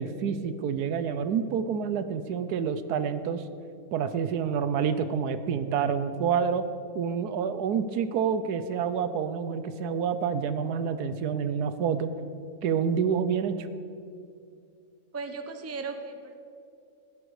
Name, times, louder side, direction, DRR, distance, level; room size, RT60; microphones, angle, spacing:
voice 1, 0.0-3.4 3.9-6.6 6.9-12.1 12.6-13.5, right 7 dB, 80° right, 11 dB, 1.3 m, -28 dB
voice 2, 15.1-16.3, right 4 dB, 15° right, 6 dB, 0.6 m, -36 dB
16.5 x 12.0 x 4.8 m, 2.5 s
omnidirectional pair, 1.7 m